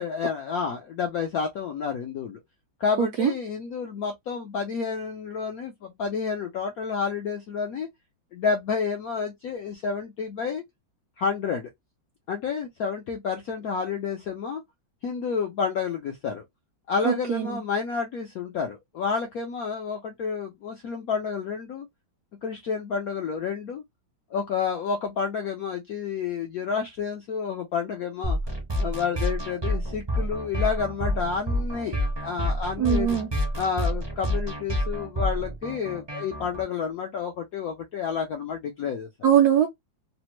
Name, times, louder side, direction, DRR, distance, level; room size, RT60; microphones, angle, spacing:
voice 1, 0.0-2.4 2.8-7.9 8.3-10.6 11.2-11.7 12.3-14.6 15.0-16.4 16.9-21.9 22.4-23.8 24.3-28.4 28.8-32.0 32.2-33.2 33.5-39.1, left 6 dB, 75° left, 0.8 m, -30 dB
voice 2, 3.0-3.3 17.0-17.5 32.8-33.3 39.2-39.7, right 9 dB, 75° right, 0.9 m, -21 dB
sound 1, 28.2-36.6, equal, 35° right, 0.4 m, -28 dB
3.3 x 2.1 x 2.9 m
omnidirectional pair, 2.2 m